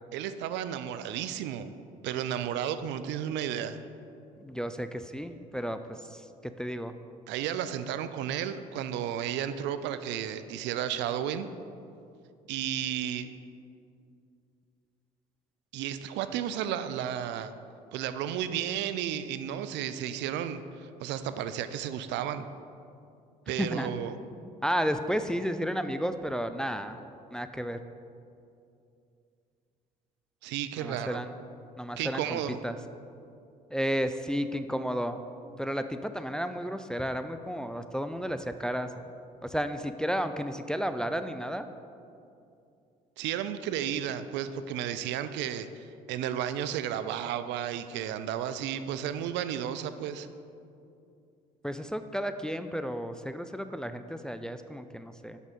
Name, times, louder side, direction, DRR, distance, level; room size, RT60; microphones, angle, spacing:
voice 1, 0.1-1.7 2.0-3.8 7.3-11.5 12.5-13.3 15.7-17.5 17.9-22.5 23.5-24.2 30.4-31.2 32.0-32.6 43.2-50.3, right 10 dB, 70° right, 11 dB, 0.4 m, -33 dB
voice 2, 4.4-5.8 6.1-6.2 6.6-6.9 23.6-23.9 24.6-27.0 27.3-27.8 30.8-31.3 31.8-32.4 32.6-32.7 33.7-35.2 35.6-39.0 39.4-41.7 51.6-55.4, equal, 5° left, 9 dB, 0.4 m, -32 dB
6.2 x 5.5 x 5.3 m, 2.5 s
hypercardioid pair, 60°, 19 cm